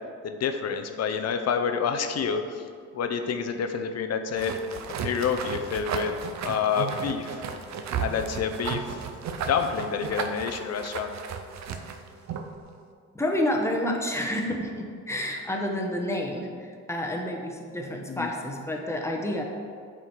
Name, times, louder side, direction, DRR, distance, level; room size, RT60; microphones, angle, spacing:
voice 1, 0.2-2.4 2.9-4.5 5.0-6.1 6.4-7.4 8.0-8.8 9.5-11.1 18.1-18.3, left 6 dB, 55° left, 7 dB, 0.8 m, -28 dB
sound 1, 4.4-12.6, right 6 dB, 65° right, 0.7 m, -34 dB
voice 2, 13.1-19.4, left 1 dB, 10° left, 1 dB, 1.2 m, -29 dB
8.5 x 5.1 x 4.6 m, 2.1 s
cardioid pair, 90°, 30 cm